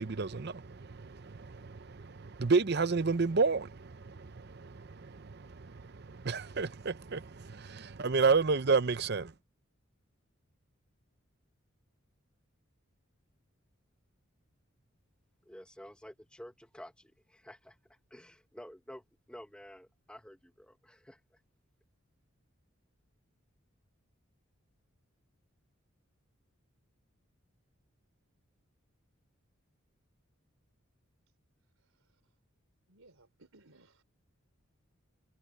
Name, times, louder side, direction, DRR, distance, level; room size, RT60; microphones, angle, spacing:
voice 1, 0.0-9.3, right 4 dB, 50° right, 0.7 m, -31 dB
voice 2, 15.4-21.4, equal, 5° left, 1.3 m, -51 dB
voice 3, 31.8-32.2 32.9-34.0, right 2 dB, 85° right, 3.6 m, -62 dB
head